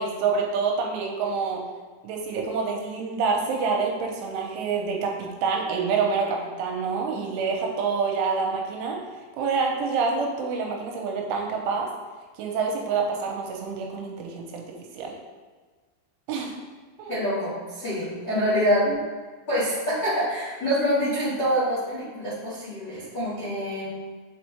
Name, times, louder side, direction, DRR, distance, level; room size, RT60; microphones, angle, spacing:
voice 1, 0.0-1.6 2.0-9.0 9.4-11.9 12.4-15.2 16.3-16.5 17.0-17.2 18.9-19.0, right 5 dB, 90° right, 0 dB, 3.1 m, -27 dB
voice 2, 17.1-18.8 19.5-23.9, equal, 85° left, -12 dB, 0.9 m, -26 dB
6.7 x 4.3 x 3.3 m, 1.4 s
omnidirectional pair, 5.6 m